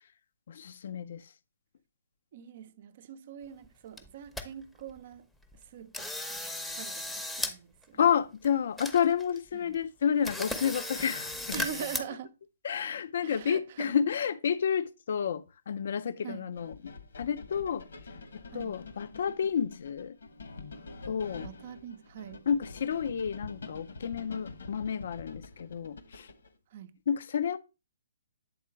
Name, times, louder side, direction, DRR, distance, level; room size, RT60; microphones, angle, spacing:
voice 1, 0.5-1.3 8.0-11.6 12.6-20.2 21.1-21.5 22.5-26.3 27.1-27.6, left 7 dB, 60° left, 0.5 m, -30 dB
voice 2, 2.3-5.3 5.5-8.1 9.5-9.8 11.5-12.4 13.2-13.9 16.2-16.5 18.5-18.7 21.4-22.5 26.7-27.0, right 9 dB, 45° right, 0.6 m, -43 dB
sound 1, 3.6-3.7 4.0-4.4 4.9-5.0 5.4-5.6 5.9-7.5 7.8-7.9 8.4-8.5 8.8-9.4 9.7-9.8 10.2-12.0, left 1 dB, 5° left, 0.8 m, -36 dB
sound 2, 16.6-26.5, left 3 dB, 75° left, 1.2 m, -47 dB
8.5 x 3.7 x 4.4 m
hypercardioid pair, 145°, 0 cm